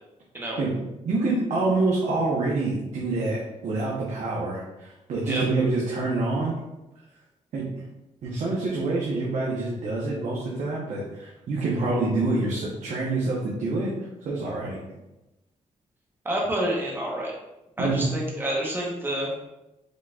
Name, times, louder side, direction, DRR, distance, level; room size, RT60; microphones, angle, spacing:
voice 1, 1.0-6.6 7.5-7.7 8.2-13.9 14.2-14.8 17.8-18.1, right 3 dB, 65° right, -5 dB, 0.9 m, -26 dB
voice 2, 16.2-17.3 17.8-19.3, right 1 dB, 15° right, -3 dB, 1.0 m, -28 dB
5.1 x 3.9 x 2.3 m, 0.98 s
cardioid pair, 135°, 13 cm